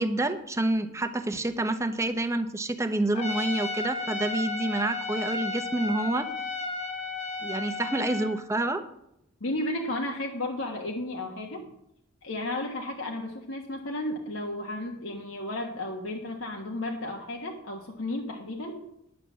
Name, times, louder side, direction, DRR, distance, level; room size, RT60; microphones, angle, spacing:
voice 1, 0.0-6.3 7.4-8.8, right 2 dB, 15° right, 7 dB, 0.9 m, -28 dB
Trumpet, 3.1-8.4, left 3 dB, 35° left, 1.3 m, -33 dB
voice 2, 9.4-11.7 12.2-18.9, left 1 dB, 80° left, 0 dB, 1.4 m, -33 dB
11.0 x 6.7 x 7.3 m, 0.80 s
head